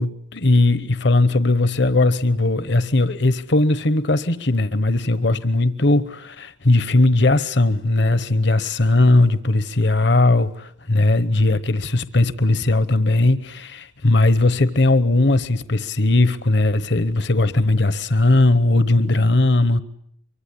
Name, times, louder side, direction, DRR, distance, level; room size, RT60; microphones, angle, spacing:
voice 1, 0.0-19.8, left 2 dB, 60° left, 14 dB, 1.1 m, -18 dB
24.5 x 24.5 x 9.9 m, 0.70 s
head